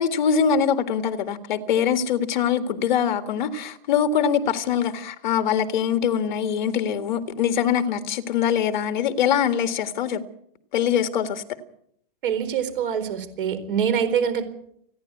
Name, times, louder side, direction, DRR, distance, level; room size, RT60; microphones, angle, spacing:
voice 1, 0.0-10.2 10.7-11.4, left 8 dB, 55° left, 1.7 m, -23 dB
voice 2, 12.2-14.4, right 8 dB, 65° right, 4.3 m, -24 dB
29.5 x 10.5 x 8.4 m
hypercardioid pair, 170°, 29 cm